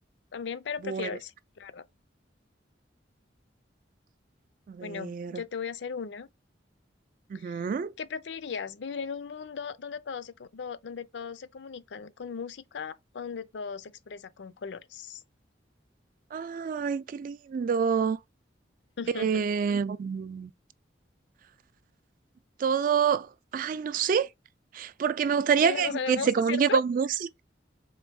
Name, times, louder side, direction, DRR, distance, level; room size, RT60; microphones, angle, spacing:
voice 1, 0.3-1.8 4.8-6.3 7.3-7.7 8.0-15.2 19.0-19.4 25.6-26.8, left 6 dB, 70° left, 0.5 m, -37 dB
voice 2, 4.7-5.4 7.3-7.9 16.3-18.2 19.2-20.5 22.6-24.3 24.7-27.1, right 6 dB, 50° right, 0.3 m, -27 dB
4.0 x 3.4 x 3.5 m
head